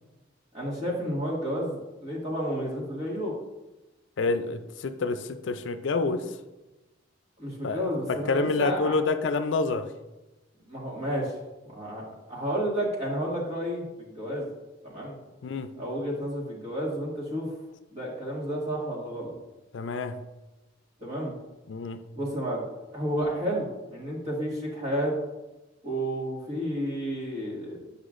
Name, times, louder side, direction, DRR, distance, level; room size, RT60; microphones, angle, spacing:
voice 1, 0.5-3.4 7.4-8.9 10.7-11.3 11.7-14.5 14.8-15.2 15.8-17.5 17.9-19.3 21.0-21.3 22.2-22.7 22.9-25.2 25.8-27.8, equal, 35° right, -4 dB, 2.0 m, -31 dB
voice 2, 4.2-6.4 7.6-9.9 15.4-15.7 19.7-20.2 21.7-22.0, left 3 dB, 75° left, 9 dB, 0.4 m, -28 dB
8.0 x 5.5 x 2.5 m, 1.0 s
head